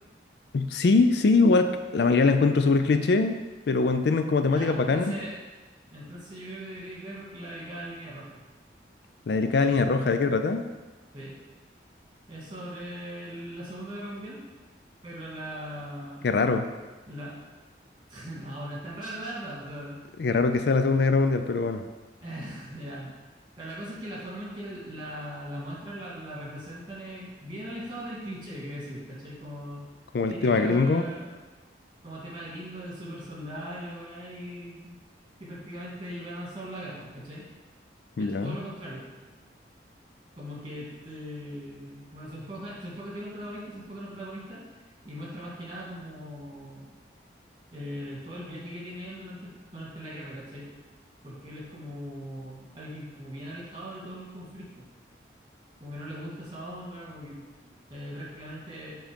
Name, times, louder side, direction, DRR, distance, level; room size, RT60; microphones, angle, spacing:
voice 1, 0.5-3.4 3.7-5.1 9.3-10.6 16.2-16.7 20.2-21.8 30.1-31.0 38.2-38.6, left 3 dB, 65° left, 8 dB, 0.4 m, -22 dB
voice 2, 4.5-5.4 5.9-8.4 11.1-11.4 12.3-14.4 15.0-16.3 17.1-17.4 18.1-20.0 22.2-23.1 23.6-29.8 30.3-31.4 32.0-35.0 35.4-37.4 38.2-39.0 40.3-44.6 45.0-46.9 47.7-49.4 49.7-50.7 51.2-54.8 55.8-59.0, equal, 25° right, -6 dB, 2.2 m, -39 dB
7.4 x 3.9 x 5.1 m, 1.2 s
head